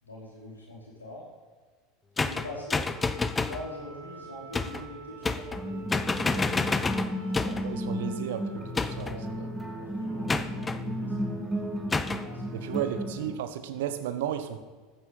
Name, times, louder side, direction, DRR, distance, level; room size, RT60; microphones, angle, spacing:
voice 1, 0.0-1.3 2.2-2.9 3.4-7.2 7.4-7.7 9.0-9.3 9.8-11.6 12.0-12.8 13.2-13.3, left 1 dB, 85° left, -4 dB, 5.0 m, -44 dB
Wind instrument woodwind instrument, 2.2-10.7, right 2 dB, 55° left, 4.3 m, -47 dB
sound 1, 2.2-3.7 4.5-4.9 5.2-5.7 5.9-7.7 8.8-9.2 10.3-10.8 11.9-12.3, left 4 dB, 20° left, 0.8 m, -29 dB
sound 2, 5.5-13.3, equal, 5° right, 2.6 m, -34 dB
voice 2, 7.6-9.5 12.5-14.6, right 10 dB, 65° right, 10 dB, 1.2 m, -34 dB
15.0 x 9.4 x 5.5 m, 1.4 s
figure-of-eight pair, 75°, 0 cm